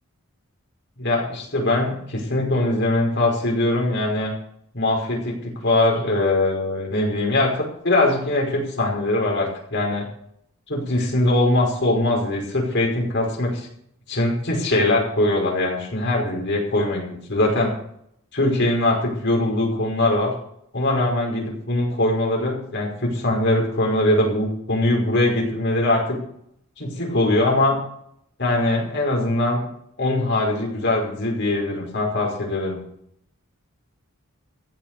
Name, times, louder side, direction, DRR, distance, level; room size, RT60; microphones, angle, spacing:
voice 1, 1.0-4.3 4.7-10.1 10.7-13.7 14.1-17.7 18.3-20.3 20.7-26.2 26.8-27.8 28.4-29.6 30.0-32.8, left 1 dB, 55° left, 0 dB, 5.3 m, -22 dB
15.0 x 9.6 x 6.8 m, 0.69 s
head